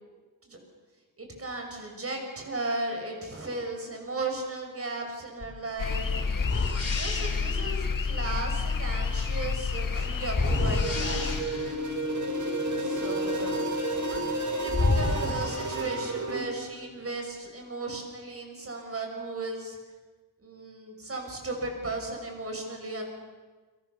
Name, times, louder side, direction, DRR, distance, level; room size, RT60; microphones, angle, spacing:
voice 1, 1.2-6.3 6.9-11.5 12.8-13.7 14.0-14.3 14.6-19.8 20.4-23.1, right 2 dB, 40° right, 3 dB, 6.4 m, -36 dB
sound 1, 5.4-5.6 6.4-7.6 10.3-11.8 14.1-14.2 14.7-16.3, left 3 dB, 45° left, 5.3 m, -30 dB
sound 2, 5.8-11.4, left 4 dB, 65° left, 1.6 m, -30 dB
sound 3, 10.4-16.4, right 1 dB, 55° right, 4.2 m, -31 dB
29.5 x 25.5 x 6.9 m, 1.3 s
wide cardioid pair, 125°, 35 cm